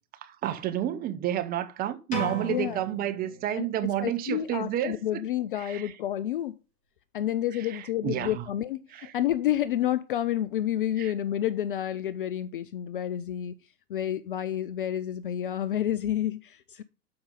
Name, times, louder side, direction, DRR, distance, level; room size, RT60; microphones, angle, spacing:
voice 1, 0.2-5.2 5.6-5.9 7.5-8.4 8.9-9.1 11.0-11.1, right 12 dB, 20° right, 0.7 m, -31 dB
sound 1, 2.1-4.0, right 1 dB, 15° left, 3.1 m, -36 dB
voice 2, 2.5-2.8 3.6-3.7 4.0-6.6 7.1-8.8 9.1-13.6 13.9-16.8, left 11 dB, 35° left, 0.4 m, -29 dB
12.0 x 5.3 x 3.7 m
figure-of-eight pair, 105°, 47 cm